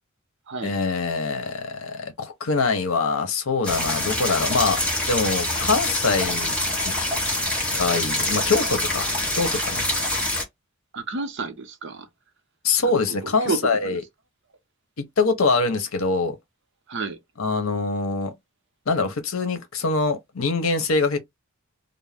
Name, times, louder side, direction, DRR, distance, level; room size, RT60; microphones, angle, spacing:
voice 1, 0.6-4.8 5.1-6.6 6.9-7.0 7.7-9.0 9.3-9.8 12.6-14.0 15.2-16.4 17.4-18.3 18.9-21.2, left 4 dB, 75° left, 0.8 m, -24 dB
sound 1, 3.6-10.4, left 1 dB, 5° left, 1.0 m, -25 dB
voice 2, 10.9-12.1 13.1-14.0 16.9-17.2, right 4 dB, 60° right, 0.6 m, -30 dB
2.5 x 2.1 x 3.3 m
head